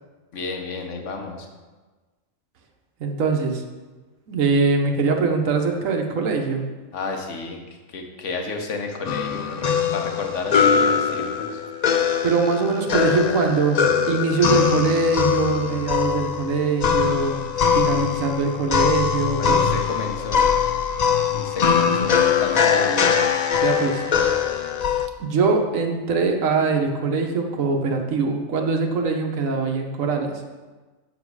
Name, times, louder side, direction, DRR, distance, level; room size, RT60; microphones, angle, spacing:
voice 1, 0.3-1.5 6.9-7.6 7.9-11.6 19.4-20.5 21.3-23.2, left 4 dB, 65° left, 3 dB, 1.4 m, -31 dB
voice 2, 3.0-3.6 4.3-6.6 12.2-17.4 17.7-19.7 23.6-24.0 25.2-30.4, right 4 dB, 75° right, 3 dB, 1.4 m, -22 dB
sound 1, 9.1-25.1, left 7 dB, 85° left, 0.3 m, -22 dB
8.0 x 7.3 x 4.7 m, 1.3 s
omnidirectional pair, 1.4 m